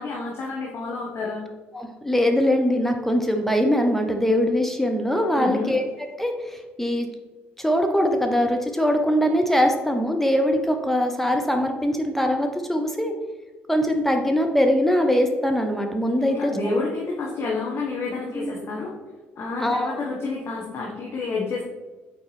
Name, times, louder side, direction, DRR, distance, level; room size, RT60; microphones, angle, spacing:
voice 1, 0.0-1.4 5.4-5.8 16.2-18.9 19.4-21.6, left 3 dB, 45° left, -3 dB, 1.2 m, -29 dB
voice 2, 1.7-5.8 6.2-7.1 7.6-13.1 13.7-16.8 18.3-18.5 19.6-19.9, equal, 5° left, 4 dB, 0.8 m, -22 dB
7.1 x 4.5 x 3.3 m, 1.3 s
figure-of-eight pair, 50°, 6 cm